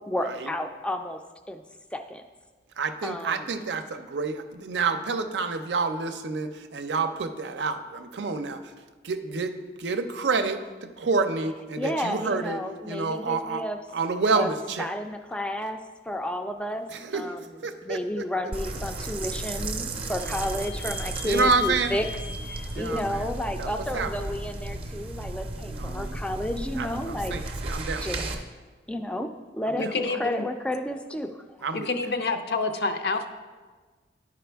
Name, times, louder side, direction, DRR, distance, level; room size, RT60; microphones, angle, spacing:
voice 1, 0.1-1.2 1.5-1.6 1.9-2.2 3.0-3.5 11.8-13.8 14.3-14.5 14.8-15.8 16.1-16.9 17.1-22.1 22.5-27.4 28.0-28.2 28.9-31.4, left 1 dB, 5° left, 6 dB, 0.3 m, -31 dB
voice 2, 2.8-8.6 9.0-10.6 11.0-13.6 13.9-14.9 16.9-17.4 17.6-18.3 21.2-21.9 22.7-23.3 23.6-24.1 25.7-26.2 26.8-28.4 29.7-30.2 31.6-31.9, right 4 dB, 85° right, 8 dB, 0.5 m, -29 dB
sound 1, 18.5-28.4, right 2 dB, 30° right, 0.6 m, -34 dB
Vehicle / Squeak, 18.9-24.3, left 2 dB, 90° left, 1.0 m, -44 dB
voice 3, 29.8-30.5 31.7-33.3, left 3 dB, 70° left, 7 dB, 0.6 m, -28 dB
11.0 x 4.9 x 3.4 m, 1.4 s
head